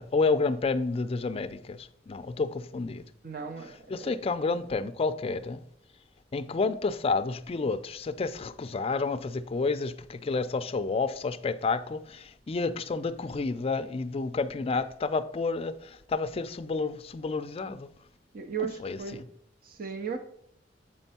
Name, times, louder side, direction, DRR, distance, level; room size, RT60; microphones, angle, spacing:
voice 1, 0.0-3.0 3.9-5.6 6.3-17.9 18.8-19.2, left 4 dB, 35° left, 0.4 m, -30 dB
voice 2, 3.2-4.2 18.3-19.2 19.6-20.2, right 6 dB, 50° right, 0.6 m, -36 dB
7.4 x 4.4 x 4.2 m
head